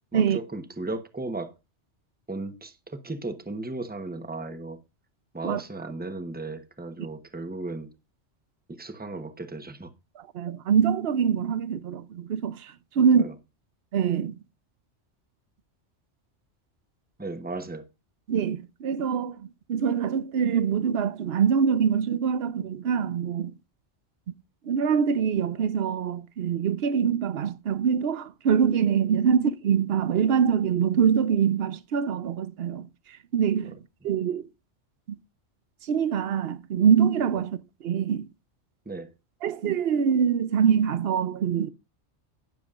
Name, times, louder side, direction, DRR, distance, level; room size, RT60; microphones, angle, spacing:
voice 1, 0.1-1.6 2.3-4.8 5.3-7.9 8.7-9.9 13.0-13.3 17.2-17.9 38.8-39.1, right 2 dB, 10° right, 1.0 m, -35 dB
voice 2, 10.2-13.2 13.9-14.4 18.3-23.5 24.6-32.9 33.3-33.8 34.0-34.4 35.1-35.2 35.8-38.3 39.4-41.7, right 7 dB, 60° right, 0.9 m, -24 dB
18.0 x 7.1 x 2.5 m
omnidirectional pair, 1.2 m